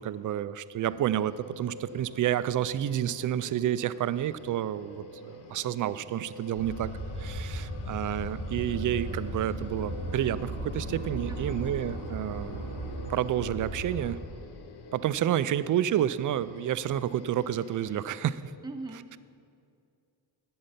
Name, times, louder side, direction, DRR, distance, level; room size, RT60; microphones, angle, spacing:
voice 1, 0.0-6.9 7.2-12.7 13.1-14.2 14.9-18.5, right 11 dB, 50° right, 15 dB, 0.4 m, -30 dB
sound 1, 0.9-18.4, left 3 dB, 65° left, 1.0 m, -48 dB
sound 2, 6.6-14.1, equal, 85° left, 2.3 m, -36 dB
voice 2, 11.3-11.7 18.6-19.2, right 2 dB, 10° right, 3 dB, 0.9 m, -41 dB
12.0 x 7.9 x 5.7 m, 2.4 s
cardioid pair, 95°, 43 cm